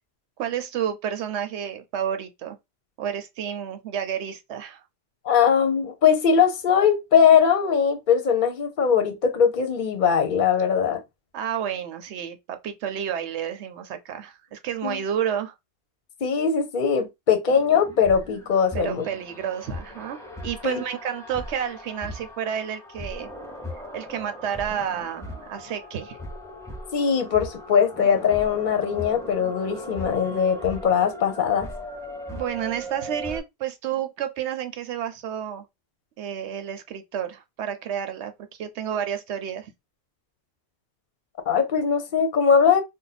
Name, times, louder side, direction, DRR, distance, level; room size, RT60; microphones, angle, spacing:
voice 1, 0.4-2.6 3.0-4.8 11.3-15.5 18.7-23.3 23.9-26.2 32.3-35.7 36.2-38.3 38.6-39.7, right 9 dB, 85° right, 0.9 m, -30 dB
voice 2, 5.2-11.0 14.8-15.0 16.2-19.1 20.6-20.8 26.9-31.7 41.5-42.8, left 7 dB, 55° left, 0.7 m, -21 dB
sound 1, 17.5-33.4, equal, 5° left, 0.5 m, -38 dB
2.6 x 2.1 x 4.0 m
omnidirectional pair, 1.1 m